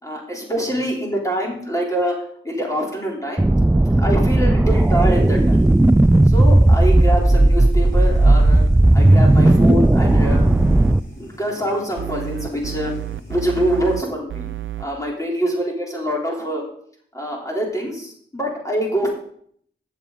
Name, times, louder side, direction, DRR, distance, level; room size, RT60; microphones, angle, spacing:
voice 1, 0.0-5.6 6.3-8.6 8.9-10.5 11.2-12.9 13.3-14.5 14.8-16.6 17.1-19.1, equal, 15° left, -3 dB, 3.5 m, -25 dB
sound 1, 3.4-11.0, right 1 dB, 10° right, 0.3 m, -14 dB
sound 2, 4.6-14.1, left 1 dB, 75° left, 3.7 m, -42 dB
sound 3, 8.0-8.7 9.0-10.9 12.0-14.0 14.3-14.9, right 10 dB, 75° right, 0.5 m, -30 dB
14.5 x 7.3 x 3.9 m, 0.62 s
wide cardioid pair, 60°, 20 cm